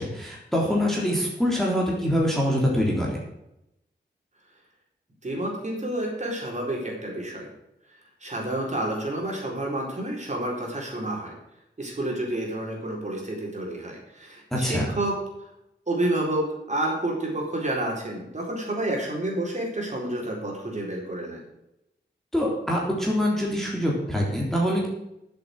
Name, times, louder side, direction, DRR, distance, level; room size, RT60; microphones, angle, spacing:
voice 1, 0.0-3.2 14.5-14.9 22.3-24.9, equal, ahead, -3 dB, 3.4 m, -24 dB
voice 2, 5.2-7.5 8.2-11.3 11.8-15.2 15.9-21.4, right 1 dB, 40° right, -2 dB, 4.3 m, -29 dB
11.5 x 7.8 x 6.5 m, 0.85 s
wide cardioid pair, 115°, 19 cm